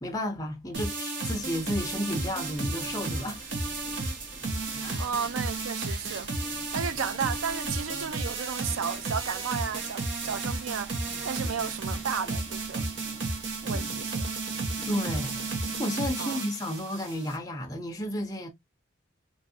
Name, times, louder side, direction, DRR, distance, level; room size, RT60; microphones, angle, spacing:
voice 1, 0.0-3.5 4.8-5.0 14.9-18.5, left 1 dB, 15° left, 0.6 m, -32 dB
sound 1, 0.7-17.4, right 3 dB, 60° right, 0.9 m, -33 dB
sound 2, 1.2-15.8, right 1 dB, 30° right, 0.8 m, -48 dB
voice 2, 5.0-6.3 6.7-12.9 13.6-14.3 14.6-14.7 16.2-16.4, right 6 dB, 90° right, 0.5 m, -33 dB
3.0 x 2.6 x 2.6 m
head